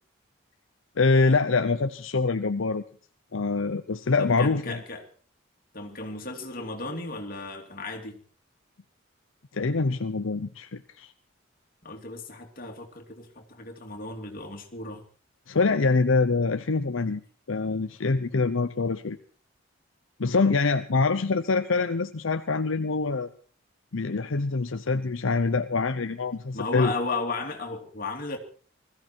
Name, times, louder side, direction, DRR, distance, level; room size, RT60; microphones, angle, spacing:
voice 1, 1.0-2.8 3.3-4.8 9.5-11.1 15.5-17.2 17.5-19.2 20.2-23.3 23.9-26.9, left 4 dB, 75° left, 9 dB, 0.7 m, -25 dB
voice 2, 4.2-5.1 5.7-8.2 11.8-15.0 26.5-28.4, left 3 dB, 45° left, 3 dB, 2.8 m, -35 dB
20.5 x 14.5 x 4.6 m, 0.42 s
head